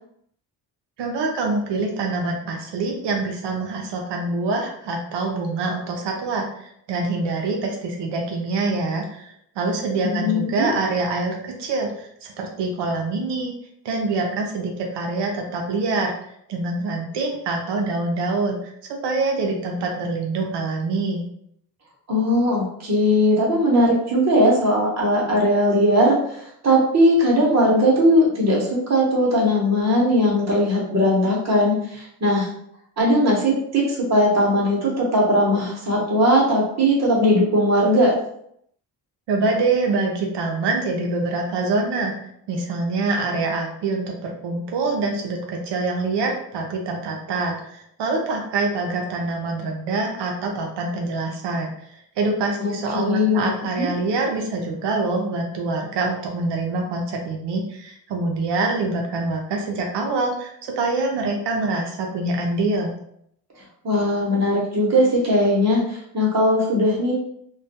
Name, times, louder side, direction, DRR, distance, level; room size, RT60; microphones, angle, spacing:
voice 1, 1.0-13.5 13.8-16.1 16.5-18.6 19.0-21.2 39.3-42.1 42.5-51.7 52.2-62.9, right 3 dB, 85° right, 1 dB, 0.5 m, -25 dB
voice 2, 10.0-10.7 22.1-32.5 33.0-38.1 52.6-53.9 63.8-67.1, equal, 40° right, -3 dB, 0.8 m, -19 dB
2.2 x 2.2 x 2.7 m, 0.71 s
wide cardioid pair, 145°, 41 cm